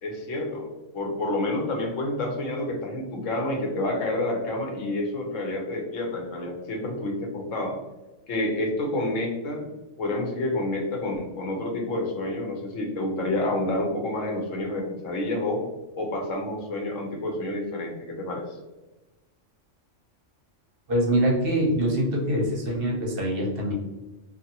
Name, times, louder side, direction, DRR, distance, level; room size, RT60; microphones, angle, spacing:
voice 1, 0.0-0.7 0.9-7.8 8.3-9.7 10.0-15.6 16.0-18.6, left 1 dB, 85° left, 1 dB, 1.1 m, -29 dB
voice 2, 20.9-23.7, equal, 55° right, -1 dB, 0.8 m, -24 dB
2.7 x 2.5 x 2.7 m, 1.1 s
omnidirectional pair, 1.3 m